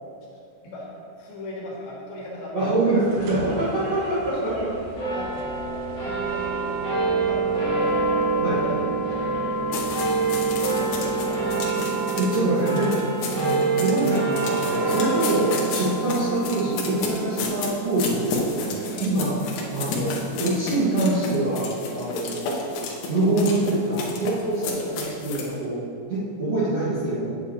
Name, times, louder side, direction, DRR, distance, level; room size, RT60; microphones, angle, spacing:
voice 1, 0.3-0.9 1.2-2.7 4.0-4.8 5.1-5.9 6.3-8.1 8.6-10.1 10.7-11.3 14.8-14.9 18.9-19.1 21.9-22.1, left 1 dB, 65° left, -4 dB, 2.9 m, -39 dB
voice 2, 2.5-4.5 8.4-8.6 11.0-11.2 12.1-13.0 13.3-19.4 19.7-22.4 23.1-25.8 26.1-27.3, right 2 dB, 65° right, -12 dB, 1.5 m, -25 dB
sound 1, 2.9-11.8, right 2 dB, 90° right, 2.3 m, -40 dB
sound 2, 5.0-21.7, right 3 dB, 45° left, 1.4 m, -27 dB
sound 3, 9.7-25.5, left 4 dB, 85° left, 1.9 m, -32 dB
8.6 x 8.5 x 2.8 m, 2.5 s
omnidirectional pair, 5.3 m